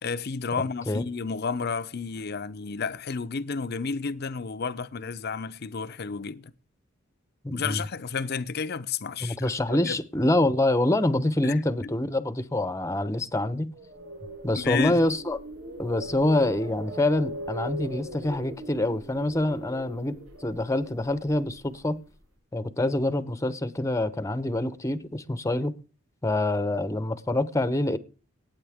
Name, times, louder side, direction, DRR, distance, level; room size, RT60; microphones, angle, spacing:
voice 1, 0.0-6.5 7.5-10.0 11.4-11.9 14.6-15.0, left 5 dB, 50° left, 0.6 m, -31 dB
voice 2, 7.4-7.8 9.2-13.7 14.4-15.4 15.8-22.0 22.5-25.8 26.2-28.0, left 1 dB, 15° left, 0.8 m, -26 dB
sound 1, 13.7-21.8, right 1 dB, 75° right, 6.7 m, -39 dB
20.0 x 9.1 x 3.5 m
head